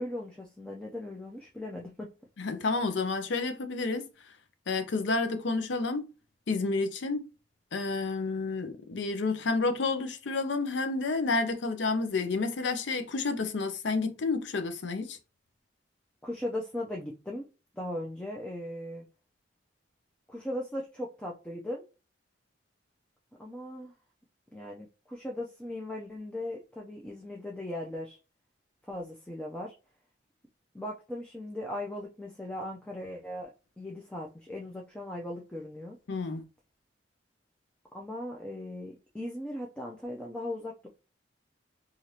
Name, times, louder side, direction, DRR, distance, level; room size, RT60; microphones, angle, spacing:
voice 1, 0.0-2.1 16.2-17.5 17.7-19.1 20.3-21.8 23.4-23.9 24.5-28.2 28.8-29.7 30.7-33.5 33.8-36.0 37.9-40.9, left 1 dB, 5° left, 0.4 m, -38 dB
voice 2, 2.4-4.1 4.7-6.1 6.5-7.3 7.7-15.2 36.1-36.4, left 3 dB, 75° left, 0.5 m, -30 dB
3.2 x 2.4 x 2.7 m
head